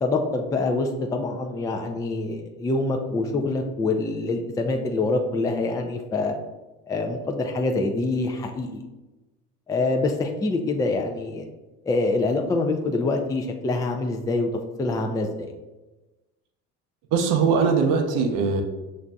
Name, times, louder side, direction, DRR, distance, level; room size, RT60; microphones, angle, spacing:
voice 1, 0.0-6.4 6.9-8.8 9.7-11.4 11.8-14.5 14.8-15.5, left 3 dB, 10° left, 3 dB, 0.3 m, -25 dB
voice 2, 17.1-18.6, right 5 dB, 65° right, 4 dB, 0.7 m, -21 dB
6.0 x 2.6 x 2.2 m, 1.1 s
supercardioid pair, 80°, 34 cm